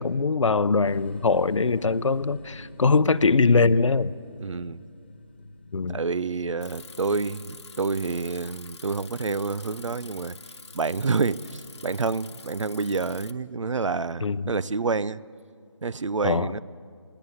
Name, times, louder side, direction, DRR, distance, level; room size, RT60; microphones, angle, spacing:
voice 1, 0.0-4.1 5.7-6.0 14.2-14.4 16.2-16.5, left 4 dB, 85° left, 16 dB, 0.7 m, -22 dB
sound 1, 0.8-14.2, left 2 dB, 20° left, 0.5 m, -48 dB
voice 2, 4.4-4.8 5.9-10.4 10.7-15.2 15.8-16.6, right 4 dB, 90° right, 19 dB, 0.6 m, -28 dB
Bicycle, 6.6-13.3, left 4 dB, 65° left, 1.1 m, -46 dB
21.0 x 17.5 x 9.6 m, 2.3 s
figure-of-eight pair, 175°, 16 cm